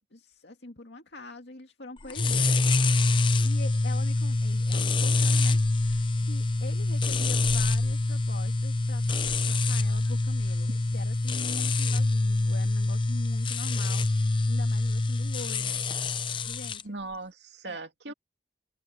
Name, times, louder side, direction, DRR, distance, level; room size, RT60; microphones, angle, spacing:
voice 1, 0.1-2.5 3.4-15.8 16.4-16.9 17.6-17.8 18.1-18.2, left 2 dB, 80° left, 2.2 m, -44 dB
sound 1, 2.1-16.8, left 2 dB, 30° left, 0.6 m, -25 dB
voice 2, 16.8-18.1, right 2 dB, 85° right, 2.5 m, -39 dB
open air
head